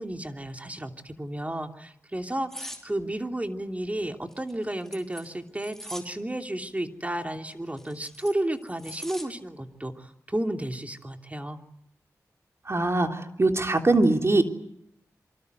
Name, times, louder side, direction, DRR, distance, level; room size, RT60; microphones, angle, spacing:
voice 1, 0.0-11.6, right 1 dB, 20° right, 5 dB, 3.0 m, -32 dB
sound 1, 2.5-2.8 4.3-6.1 7.5-9.3 9.7-9.9, equal, 5° left, 5.2 m, -42 dB
voice 2, 12.7-14.4, right 2 dB, 45° right, 5 dB, 3.5 m, -22 dB
27.5 x 24.5 x 8.1 m, 0.75 s
cardioid pair, 45°, 6 cm